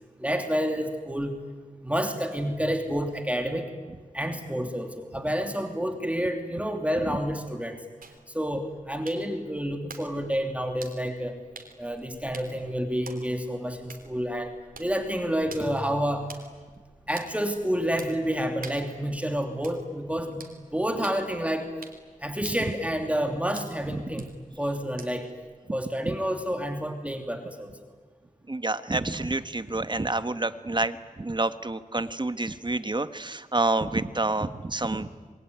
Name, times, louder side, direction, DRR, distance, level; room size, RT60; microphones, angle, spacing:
voice 1, 0.2-1.3 1.8-3.7 4.1-7.8 8.3-11.3 11.8-14.5 14.8-16.3 17.1-20.4 20.7-21.7 22.2-24.3 24.6-25.3 25.7-27.8, equal, 10° right, 4 dB, 3.0 m, -29 dB
sound 1, 8.0-25.4, right 4 dB, 90° right, 3.4 m, -50 dB
voice 2, 28.5-35.1, right 2 dB, 35° right, 11 dB, 1.4 m, -28 dB
26.5 x 23.0 x 9.5 m, 1.5 s
cardioid pair, 50°, 14 cm